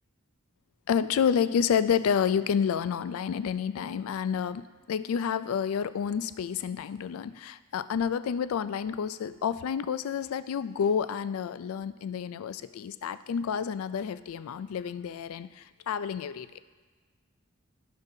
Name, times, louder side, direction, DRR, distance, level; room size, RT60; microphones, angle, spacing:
voice 1, 0.9-4.6 4.9-16.6, left 7 dB, 90° left, 14 dB, 0.3 m, -29 dB
16.0 x 5.3 x 2.7 m, 1.4 s
head